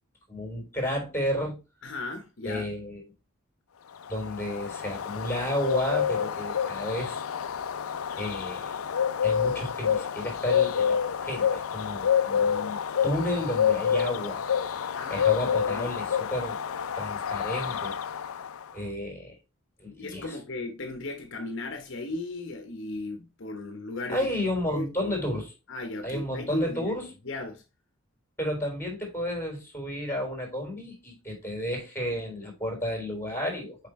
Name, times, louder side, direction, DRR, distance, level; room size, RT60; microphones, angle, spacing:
voice 1, 0.3-1.6 2.4-3.0 4.1-7.2 8.2-8.8 9.2-14.4 15.1-16.6 17.0-18.0 18.7-19.4 19.8-20.4 24.1-25.5 26.0-27.1 28.4-33.8, left 1 dB, 10° left, 3.5 m, -32 dB
voice 2, 1.8-2.7 14.9-15.9 20.0-24.3 24.7-25.1 25.7-26.9 27.2-27.6, left 2 dB, 60° left, 1.0 m, -36 dB
Bird, 4.0-18.7, left 8 dB, 80° left, 0.5 m, -28 dB
7.1 x 5.0 x 3.1 m
head